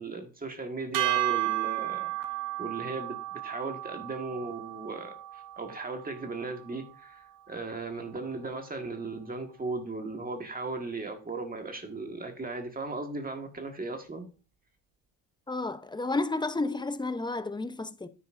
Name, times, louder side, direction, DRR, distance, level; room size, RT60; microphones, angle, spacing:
voice 1, 0.0-2.1 2.6-14.3, right 3 dB, 25° right, 1.6 m, -37 dB
sound 1, 0.9-7.3, right 16 dB, 65° right, 1.4 m, -34 dB
voice 2, 15.5-18.1, left 2 dB, 10° left, 0.7 m, -31 dB
9.5 x 9.4 x 2.6 m
supercardioid pair, 85°, 37 cm